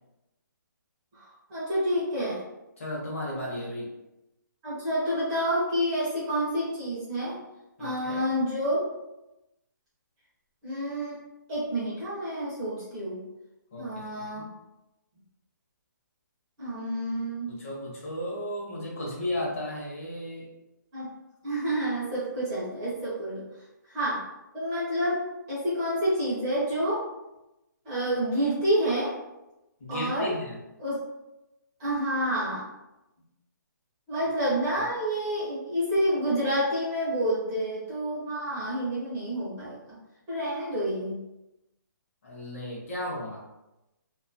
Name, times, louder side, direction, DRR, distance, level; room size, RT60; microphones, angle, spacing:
voice 1, 1.5-2.4 4.6-7.4 7.8-8.9 10.6-11.2 11.5-13.2 13.8-14.4 16.6-17.5 20.9-21.1 21.4-23.4 23.9-24.2 24.5-27.0 27.8-29.1 29.9-30.3 30.8-31.0 31.8-32.7 34.1-40.0 40.3-41.2, equal, 15° right, -9 dB, 0.5 m, -28 dB
voice 2, 2.8-3.9 7.8-8.2 13.7-14.5 17.5-20.5 29.8-30.6 42.2-43.4, left 1 dB, 40° left, -3 dB, 0.8 m, -35 dB
2.5 x 2.3 x 2.5 m, 0.95 s
hypercardioid pair, 170°, 11 cm